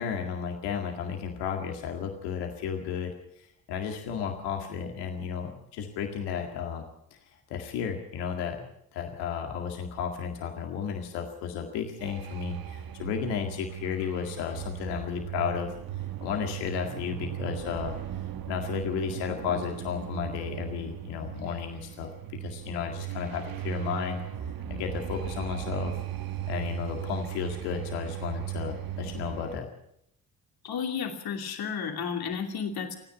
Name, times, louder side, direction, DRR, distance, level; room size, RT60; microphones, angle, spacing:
voice 1, 0.0-7.2 7.5-18.0 18.5-22.1 22.4-24.2 24.7-25.9 26.5-29.7, left 7 dB, 85° left, 2 dB, 2.1 m, -33 dB
sound 1, 12.0-29.6, right 12 dB, 65° right, 1.2 m, -37 dB
voice 2, 30.6-33.0, left 6 dB, 65° left, 3 dB, 2.7 m, -32 dB
28.5 x 9.8 x 9.2 m, 0.77 s
hypercardioid pair, 50°, 39 cm